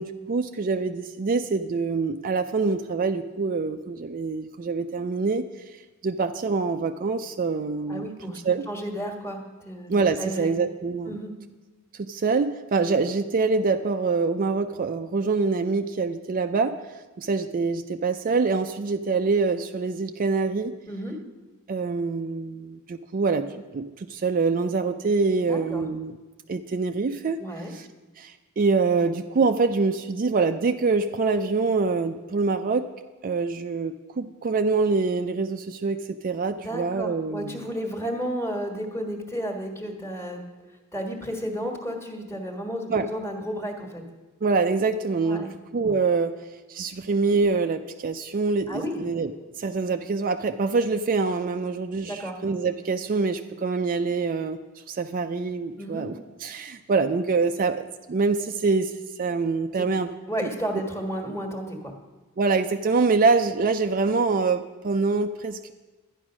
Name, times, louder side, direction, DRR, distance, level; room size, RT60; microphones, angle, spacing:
voice 1, 0.0-5.5 6.0-8.1 8.4-8.7 9.9-11.2 12.1-16.8 17.2-20.7 21.7-26.2 26.5-27.9 28.2-32.9 33.2-37.5 42.9-43.1 44.4-45.5 45.7-46.3 46.7-49.3 49.6-54.6 54.9-56.2 56.4-60.1 60.4-60.5 62.4-65.7, right 4 dB, 40° right, 7 dB, 0.4 m, -25 dB
voice 2, 7.9-8.4 8.7-9.4 9.6-10.5 11.0-11.3 20.9-21.2 25.4-25.8 27.4-27.7 36.6-40.4 40.9-44.0 45.2-45.5 48.7-49.0 52.0-52.3 55.8-56.1 59.7-59.9 60.3-61.9, equal, 10° left, 3 dB, 1.6 m, -32 dB
12.0 x 9.8 x 6.1 m, 1.2 s
head